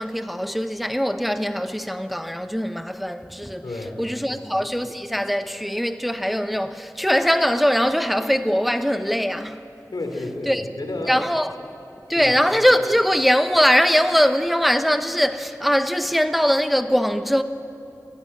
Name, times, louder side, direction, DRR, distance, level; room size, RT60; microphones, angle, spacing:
voice 1, 0.0-3.7 4.0-9.6 10.5-10.6 11.1-11.5 12.1-17.4, equal, ahead, 0.8 m, -21 dB
voice 2, 3.6-4.0 4.3-4.4 9.9-11.2 12.1-12.3, left 2 dB, 85° left, 2.7 m, -31 dB
17.5 x 16.5 x 9.8 m
wide cardioid pair, 45°, 7 cm